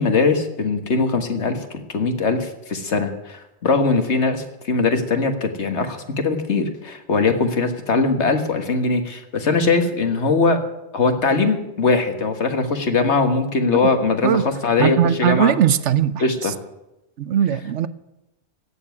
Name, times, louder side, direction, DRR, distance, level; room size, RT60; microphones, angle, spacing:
voice 1, 0.0-10.6 10.9-15.5 16.2-16.5, left 3 dB, 75° left, 1.9 m, -21 dB
voice 2, 14.8-16.5 17.2-17.9, right 10 dB, 80° right, 1.0 m, -19 dB
16.0 x 7.2 x 9.6 m
omnidirectional pair, 1.2 m